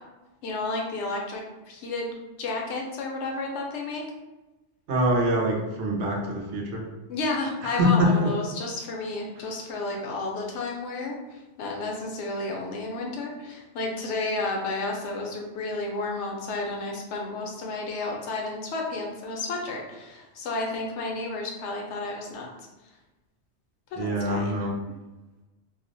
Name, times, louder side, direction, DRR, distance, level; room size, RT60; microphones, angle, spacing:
voice 1, 0.4-2.1 2.4-4.0 7.1-22.5 23.9-24.4, left 2 dB, 80° left, 0 dB, 0.9 m, -32 dB
voice 2, 4.9-6.9 7.6-8.3 9.4-9.5 24.0-24.8, equal, 65° right, 0 dB, 0.7 m, -24 dB
2.4 x 2.0 x 2.5 m, 1.1 s
omnidirectional pair, 1.2 m